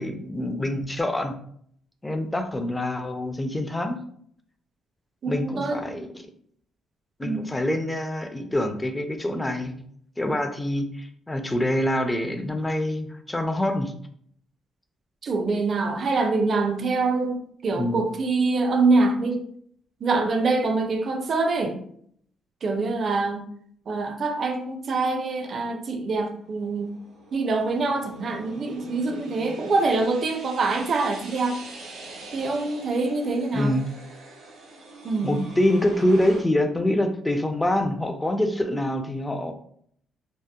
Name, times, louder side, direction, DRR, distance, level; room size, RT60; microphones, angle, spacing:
voice 1, 0.0-1.3 2.0-4.0 5.3-6.3 7.2-9.7 10.2-13.9 17.7-18.0 33.5-33.9 35.2-39.5, left 1 dB, 15° left, 6 dB, 0.4 m, -25 dB
voice 2, 5.2-5.8 7.2-7.5 15.2-19.4 20.0-21.8 22.6-23.4 23.9-26.9 27.3-31.6 32.3-33.7 35.0-35.4, right 3 dB, 50° right, 4 dB, 0.4 m, -25 dB
sound 1, 26.3-36.4, right 2 dB, 85° right, 0.9 m, -44 dB
2.7 x 2.0 x 2.2 m, 0.64 s
cardioid pair, 90°, 0 cm